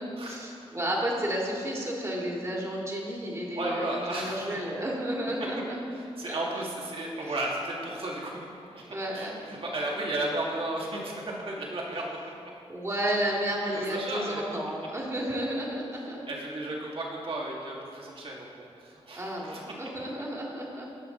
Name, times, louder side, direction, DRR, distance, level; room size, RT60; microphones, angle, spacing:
voice 1, 0.2-5.8 6.2-6.7 7.2-7.3 8.9-9.4 12.7-16.2 19.1-20.9, right 1 dB, 25° right, -3 dB, 2.2 m, -32 dB
voice 2, 3.5-4.6 5.4-5.6 5.9-12.2 13.9-14.4 16.3-19.6, right 1 dB, 60° right, -3 dB, 2.1 m, -34 dB
18.0 x 6.2 x 3.9 m, 2.4 s
wide cardioid pair, 90°, 11 cm